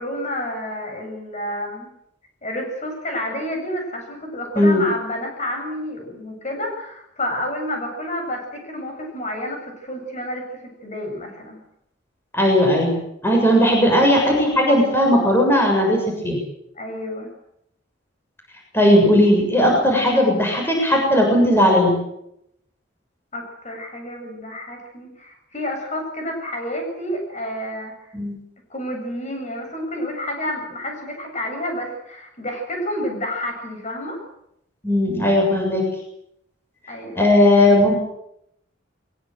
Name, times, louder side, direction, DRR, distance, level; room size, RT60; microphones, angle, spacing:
voice 1, 0.0-1.9 2.4-10.4 10.8-11.6 16.7-17.3 23.3-27.9 28.7-34.2 36.9-37.2, left 1 dB, 40° left, 2 dB, 8.0 m, -29 dB
voice 2, 12.3-16.4 18.7-22.0 28.1-28.4 34.8-35.8 37.2-37.9, left 1 dB, 15° left, 0 dB, 7.2 m, -17 dB
22.5 x 22.5 x 8.0 m, 0.79 s
head